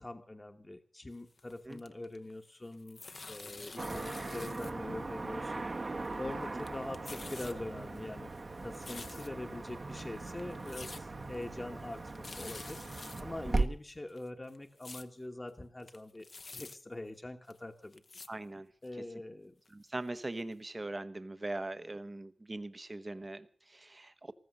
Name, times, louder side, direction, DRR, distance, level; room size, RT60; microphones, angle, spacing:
voice 1, 0.0-5.7 6.2-8.3 8.6-12.8 13.2-18.0 18.8-19.5, left 2 dB, 30° left, 5 dB, 1.2 m, -43 dB
sound 1, 1.2-2.4 2.6-4.7 5.0-5.1 5.8-6.3 6.6-7.5 8.0-9.5 10.0-10.1 10.4-11.0 11.3-11.4 11.8-11.9 12.1-13.2 13.6-13.7 14.1-15.1 15.5-15.6 15.8-16.8 17.5-17.6 17.9-18.3 18.8-18.9 19.7-19.8 20.2-20.3 20.5-20.6, left 3 dB, 55° left, 0.9 m, -48 dB
Car passing by / Traffic noise roadway noise, 3.8-13.6, right 3 dB, 50° right, 1.3 m, -39 dB
voice 2, 18.3-19.0 19.7-24.3, right 2 dB, 35° right, 11 dB, 1.0 m, -41 dB
14.5 x 14.0 x 6.4 m, 0.42 s
cardioid pair, 50°, 0 cm